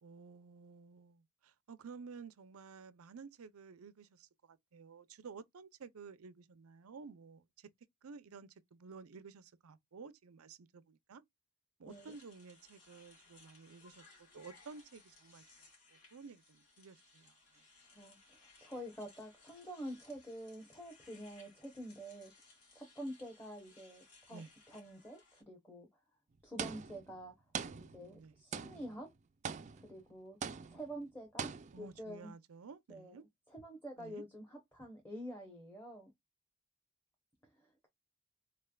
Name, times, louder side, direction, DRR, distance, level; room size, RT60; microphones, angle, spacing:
voice 1, 0.0-7.7 8.0-11.2 11.8-14.0 14.3-15.4 15.9-17.6 24.3-24.5 27.7-28.4 31.7-33.2 34.0-34.2, right 5 dB, 90° right, 0.5 m, -53 dB
sound 1, 11.9-25.4, left 3 dB, 85° left, 2.3 m, -63 dB
voice 2, 17.9-22.3 22.7-25.9 26.4-27.3 27.8-29.1 29.8-30.4 30.7-32.3 32.9-33.2 33.5-36.1, equal, 10° left, 1.0 m, -47 dB
sound 2, 26.6-27.2 27.5-28.2 28.5-29.0 29.4-30.0 30.4-30.9 31.4-32.0, right 6 dB, 35° right, 0.4 m, -42 dB
4.1 x 3.2 x 2.2 m
head